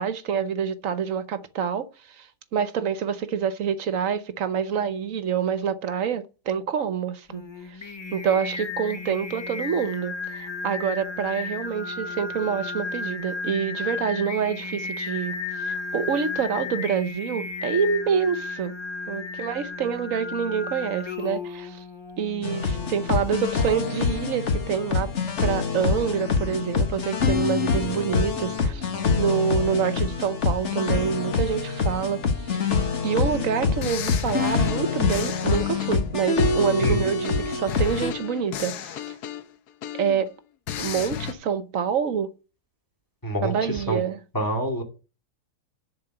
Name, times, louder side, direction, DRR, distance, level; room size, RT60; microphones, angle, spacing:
voice 1, 0.0-7.4 8.1-18.7 19.1-21.8 22.2-25.1 25.4-32.8 33.0-39.2 39.9-40.3 40.8-42.3 43.4-44.2, right 7 dB, 60° right, 1.2 m, -27 dB
Singing, 7.3-23.6, left 4 dB, 30° left, 0.5 m, -34 dB
sound 1, 22.4-38.1, left 4 dB, 50° left, 1.5 m, -25 dB
sound 2, 33.2-33.4 33.8-36.9 37.2-40.3 40.7-41.3, left 10 dB, 85° left, 1.4 m, -34 dB
voice 2, 44.3-44.8, right 1 dB, 15° left, 2.2 m, -26 dB
10.5 x 4.4 x 7.9 m
omnidirectional pair, 1.7 m